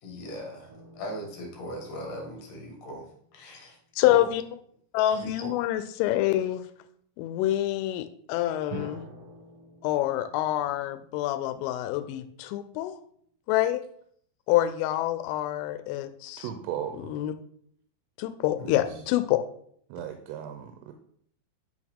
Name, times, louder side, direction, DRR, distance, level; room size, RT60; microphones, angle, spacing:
voice 1, 0.0-4.3 5.0-5.5 18.6-19.1, equal, 60° left, 0 dB, 2.5 m, -40 dB
sound 1, 0.7-3.8 8.7-12.3, right 2 dB, 70° right, 3.8 m, -48 dB
voice 2, 4.0-4.4 4.9-6.6 7.2-9.1 9.8-12.9 13.5-13.8 14.5-16.4 17.1-17.3 18.2-19.4, left 14 dB, 90° left, 10 dB, 3.1 m, -26 dB
voice 3, 16.4-17.1 18.6-18.8 19.9-20.9, right 10 dB, 85° right, 6 dB, 3.2 m, -36 dB
8.5 x 6.4 x 3.5 m, 0.64 s
omnidirectional pair, 5.7 m